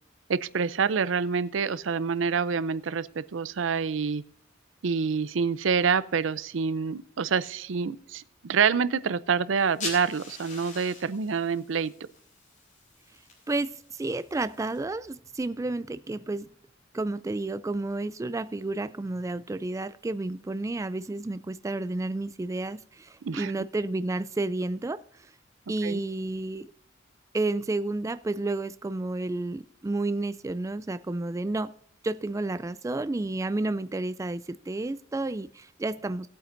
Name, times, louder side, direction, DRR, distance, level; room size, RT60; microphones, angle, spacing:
voice 1, 0.3-4.2 4.8-11.9 23.2-23.5 25.8-26.0, right 6 dB, 75° right, 0.5 m, -27 dB
sound 1, 9.6-14.8, left 3 dB, 40° left, 3.7 m, -43 dB
voice 2, 13.5-16.5 16.9-25.3 25.7-26.7 27.3-31.7 32.0-36.3, right 2 dB, 15° right, 0.3 m, -31 dB
19.0 x 8.6 x 2.6 m
head